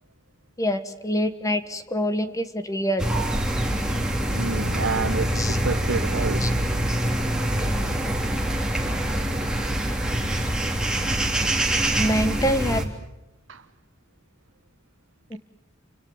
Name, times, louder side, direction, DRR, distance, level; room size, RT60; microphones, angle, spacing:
voice 1, 0.6-3.0 5.3-5.6 6.4-6.5 12.0-12.9 15.3-15.4, equal, 15° left, 1.4 m, -25 dB
sound 1, 3.0-12.8, right 1 dB, 5° right, 3.5 m, -25 dB
voice 2, 4.3-6.4 10.8-11.1 13.5-13.6, right 4 dB, 65° right, 1.0 m, -29 dB
29.5 x 25.0 x 7.2 m
head